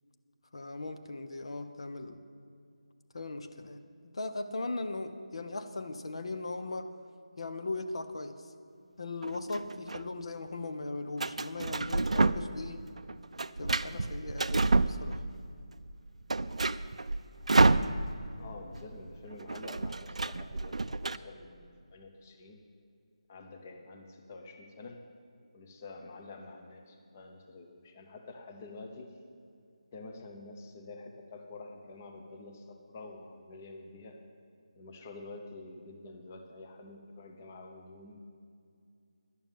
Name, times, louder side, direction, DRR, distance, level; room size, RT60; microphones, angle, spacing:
voice 1, 0.5-2.2 3.1-6.9 7.4-8.5 9.0-12.9 13.6-15.2, left 2 dB, 55° left, 8 dB, 0.7 m, -38 dB
sound 1, 9.2-10.0 11.2-12.7 13.0-15.5 15.8-15.9 16.2-18.4 18.6-18.8 19.1-21.2, right 3 dB, 80° right, 0.4 m, -29 dB
voice 2, 18.4-22.6 23.3-25.0 25.5-29.2 29.9-34.2 34.7-38.2, left 3 dB, 20° left, 4 dB, 0.8 m, -48 dB
11.0 x 7.1 x 9.0 m, 2.4 s
figure-of-eight pair, 170°, 3 cm